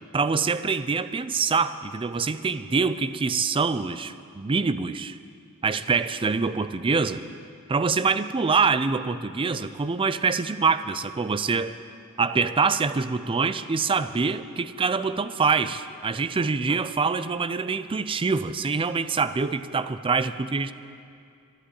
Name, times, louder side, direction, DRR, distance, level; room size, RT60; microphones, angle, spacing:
voice 1, 0.1-5.2 5.6-7.2 7.7-11.7 12.2-20.7, right 4 dB, 25° right, 13 dB, 0.4 m, -25 dB
11.5 x 11.5 x 8.3 m, 2.4 s
head